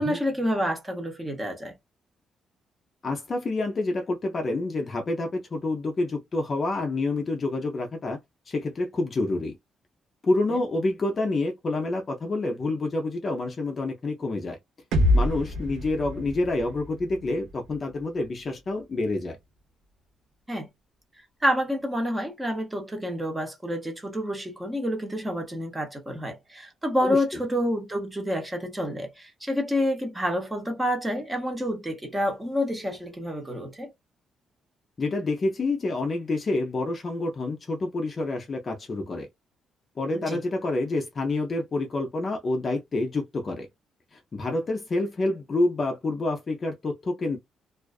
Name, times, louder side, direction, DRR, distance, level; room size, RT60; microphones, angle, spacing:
voice 1, 0.0-1.7 20.5-20.7 21.4-33.9 40.1-40.4, equal, 10° right, 0.7 m, -28 dB
voice 2, 3.0-8.2 8.5-9.6 10.2-14.6 15.1-19.4 27.1-27.2 35.0-39.3 40.0-43.7 44.1-47.4, left 2 dB, 25° left, 0.4 m, -28 dB
sound 1, 14.9-18.8, left 1 dB, 80° right, 0.8 m, -27 dB
2.3 x 2.3 x 2.3 m
cardioid pair, 175°, 0 cm